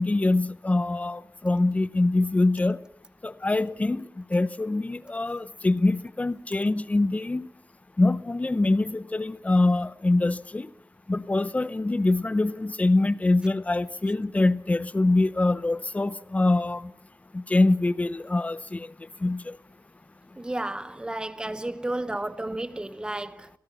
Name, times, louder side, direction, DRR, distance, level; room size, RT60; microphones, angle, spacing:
voice 1, 0.0-2.8 3.2-7.5 8.0-10.7 11.1-16.9 17.3-18.9 19.2-19.6, left 2 dB, 20° left, 0.8 m, -24 dB
voice 2, 20.4-23.5, right 1 dB, 15° right, 0.9 m, -32 dB
29.0 x 17.5 x 5.8 m
wide cardioid pair, 145°, 7 cm